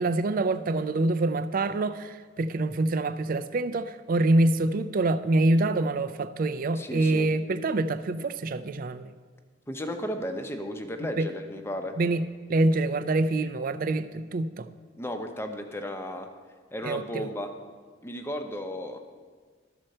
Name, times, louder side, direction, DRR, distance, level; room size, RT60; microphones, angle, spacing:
voice 1, 0.0-9.1 11.2-11.3 12.0-12.2 12.5-14.7 16.8-17.3, right 2 dB, 45° right, 12 dB, 0.4 m, -26 dB
voice 2, 6.8-7.3 9.7-11.9 15.0-16.3 16.7-17.5 18.0-19.0, equal, 15° left, 5 dB, 0.7 m, -34 dB
13.0 x 4.3 x 6.5 m, 1.5 s
head